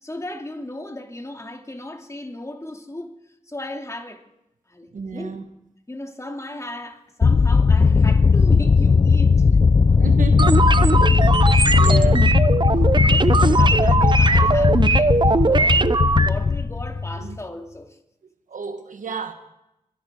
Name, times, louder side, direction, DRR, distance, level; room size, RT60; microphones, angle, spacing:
voice 1, 0.0-4.3 4.7-5.4 5.9-9.5 11.5-12.2 12.6-18.0, left 1 dB, 25° left, 2.5 m, -36 dB
voice 2, 4.9-5.5 10.0-10.7 11.4-12.2 17.2-17.4 18.5-19.3, right 5 dB, 90° right, 1.2 m, -32 dB
sound 1, 7.2-17.3, left 5 dB, 40° left, 0.4 m, -17 dB
sound 2, 10.4-16.3, right 3 dB, 35° right, 0.7 m, -20 dB
25.5 x 11.0 x 3.6 m
cardioid pair, 40°, 13 cm